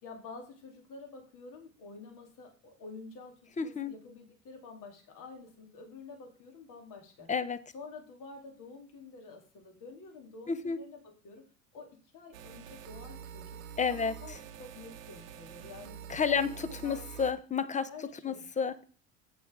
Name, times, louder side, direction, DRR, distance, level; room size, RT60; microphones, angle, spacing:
voice 1, 0.0-7.3 7.7-11.4 11.7-13.6 13.8-16.0 16.3-17.1 17.9-18.4, left 4 dB, 50° left, 2.6 m, -49 dB
voice 2, 3.6-3.9 7.3-7.6 10.5-10.8 13.8-14.1 16.1-16.5 16.8-17.9 18.2-18.7, left 6 dB, 20° left, 0.8 m, -30 dB
sound 1, 12.3-17.3, right 8 dB, 85° right, 1.1 m, -46 dB
8.4 x 8.4 x 3.6 m
hypercardioid pair, 80°, 39 cm